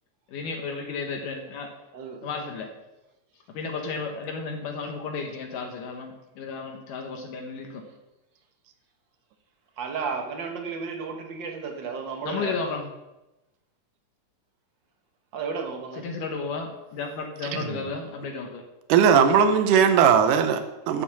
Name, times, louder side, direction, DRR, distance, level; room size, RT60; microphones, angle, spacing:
voice 1, 0.3-1.7 2.2-2.7 3.5-7.8 12.2-12.9 15.9-18.6, left 4 dB, 80° left, 2 dB, 2.6 m, -33 dB
voice 2, 1.9-2.3 9.8-12.7 15.3-16.0, right 5 dB, 60° right, 3 dB, 1.2 m, -33 dB
voice 3, 18.9-21.0, right 7 dB, 90° right, 8 dB, 2.4 m, -19 dB
8.4 x 7.5 x 7.1 m, 0.97 s
omnidirectional pair, 3.7 m